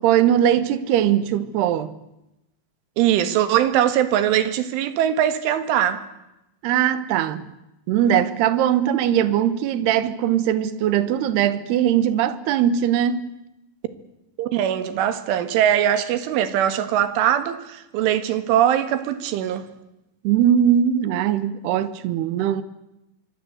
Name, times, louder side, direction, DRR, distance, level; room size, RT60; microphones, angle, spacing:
voice 1, 0.0-2.0 6.6-7.4 7.9-13.2 20.2-22.6, right 10 dB, 70° right, 3.0 m, -20 dB
voice 2, 3.0-6.1 14.4-19.7, right 10 dB, 85° right, 4.2 m, -21 dB
25.0 x 23.5 x 8.0 m
omnidirectional pair, 5.4 m